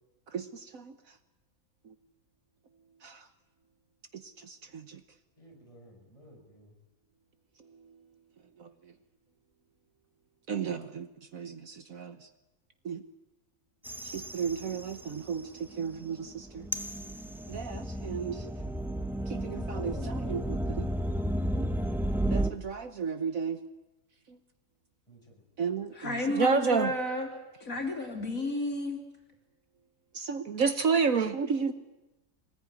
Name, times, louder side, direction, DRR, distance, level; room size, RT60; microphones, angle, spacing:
voice 1, 0.3-1.0 1.8-1.9 3.0-3.3 4.1-5.0 8.6-8.7 10.5-12.3 12.8-13.0 14.0-16.7 17.5-18.5 19.3-20.9 21.6-21.7 22.3-23.6 24.3-24.4 25.6-26.9 30.1-31.7, right 5 dB, 60° right, 9 dB, 1.4 m, -32 dB
voice 2, 5.4-6.7 19.7-20.4 25.1-25.8, left 2 dB, 20° left, -1 dB, 6.1 m, -52 dB
sound 1, 13.8-15.4 15.8-22.5, right 1 dB, 5° right, 0.4 m, -33 dB
voice 3, 26.0-27.3 27.6-29.0, left 2 dB, 55° left, 2 dB, 3.6 m, -31 dB
23.5 x 19.5 x 9.8 m, 1.0 s
omnidirectional pair, 1.7 m